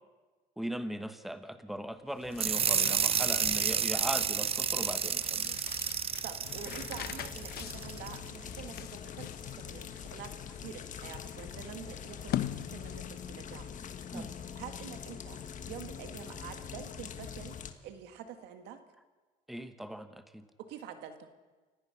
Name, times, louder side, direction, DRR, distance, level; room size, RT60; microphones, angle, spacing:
voice 1, 0.6-5.6 14.1-14.3 19.5-20.4, equal, ahead, 9 dB, 1.3 m, -39 dB
sound 1, 2.1-13.3, left 12 dB, 65° left, 0.9 m, -43 dB
sound 2, 2.4-8.2, right 7 dB, 35° right, 0.7 m, -31 dB
voice 2, 6.2-13.7 14.1-18.8 20.7-21.3, right 8 dB, 85° right, 8 dB, 1.8 m, -47 dB
sound 3, 6.4-17.7, left 8 dB, 50° left, 1.6 m, -44 dB
29.0 x 16.5 x 5.9 m, 1.3 s
cardioid pair, 110°, 17 cm